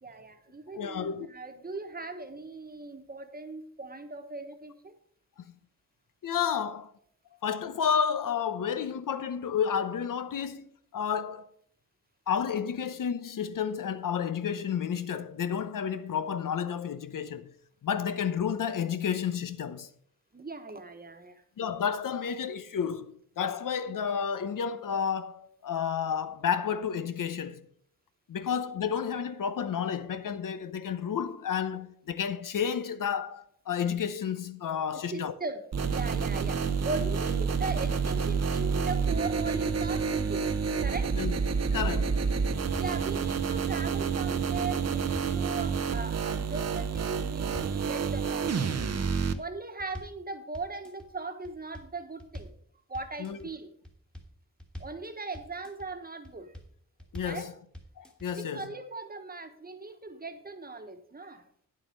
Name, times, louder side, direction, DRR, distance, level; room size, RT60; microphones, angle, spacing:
voice 1, 0.0-4.9 6.6-6.8 20.3-21.4 35.1-40.5 40.8-41.1 42.8-48.6 49.4-52.5 52.9-53.7 54.8-56.6 57.2-57.5 58.3-61.4, right 3 dB, 30° right, 1.2 m, -39 dB
voice 2, 0.7-1.3 5.4-5.5 6.2-6.9 7.4-11.5 12.3-17.5 17.8-19.9 21.6-27.6 28.3-35.3 41.1-41.4 41.7-42.2 53.2-53.4 57.1-57.5 58.0-58.6, left 7 dB, 85° left, 0.8 m, -31 dB
sound 1, 35.7-49.3, right 5 dB, 55° right, 0.7 m, -29 dB
sound 2, 42.7-43.0 43.3-43.9 44.2-45.4 45.7-46.3 46.6-47.1 47.4-47.8 48.1-48.7 49.0-50.2 50.5-51.1 51.4-52.6 52.9-53.5 53.8-55.0 55.3-55.9 56.2-56.7 57.0-57.4 57.7-58.3, equal, 5° left, 1.5 m, -45 dB
9.8 x 7.6 x 5.3 m
wide cardioid pair, 145°, 32 cm